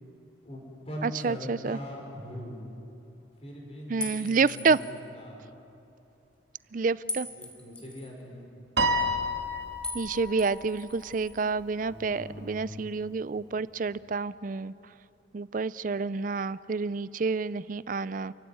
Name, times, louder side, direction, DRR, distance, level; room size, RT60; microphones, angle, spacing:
voice 1, 0.4-2.7 3.4-5.4 7.3-8.5 11.7-12.7, equal, 35° left, 0 dB, 5.1 m, -41 dB
voice 2, 1.0-1.8 3.9-4.8 6.7-7.3 9.9-14.7 15.3-18.3, right 4 dB, 45° right, 18 dB, 0.4 m, -29 dB
sound 1, 4.0-5.0 7.1-8.1 9.8-10.1 10.4-11.3, left 2 dB, 5° left, 2.3 m, -39 dB
Piano, 8.8-11.3, equal, 65° right, 1.7 m, -30 dB
28.5 x 15.0 x 9.6 m, 2.8 s
head